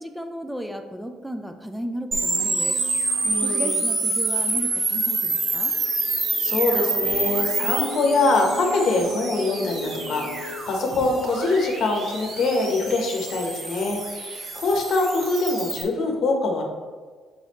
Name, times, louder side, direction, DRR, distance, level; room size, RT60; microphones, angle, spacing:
voice 1, 0.0-2.8 3.4-5.7, equal, 5° right, 6 dB, 0.4 m, -34 dB
sound 1, 2.1-15.8, right 3 dB, 45° right, 1.2 m, -27 dB
sound 2, 2.1-11.9, right 1 dB, 85° right, 0.9 m, -38 dB
voice 2, 3.2-3.8 6.2-16.6, left 3 dB, 60° left, 2 dB, 1.1 m, -24 dB
7.7 x 4.0 x 3.0 m, 1.5 s
cardioid pair, 125°, 0 cm